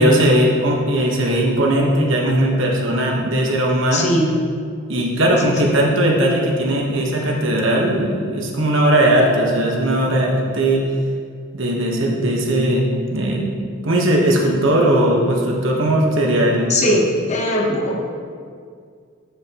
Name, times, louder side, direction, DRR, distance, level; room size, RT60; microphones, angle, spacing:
voice 1, 0.0-4.0 4.9-10.8 11.5-13.5 13.8-16.7, right 1 dB, 70° right, -1 dB, 1.2 m, -18 dB
voice 2, 3.9-4.3 5.4-5.8 16.7-18.0, left 1 dB, 35° left, 0 dB, 1.0 m, -20 dB
9.4 x 6.9 x 3.0 m, 2.2 s
head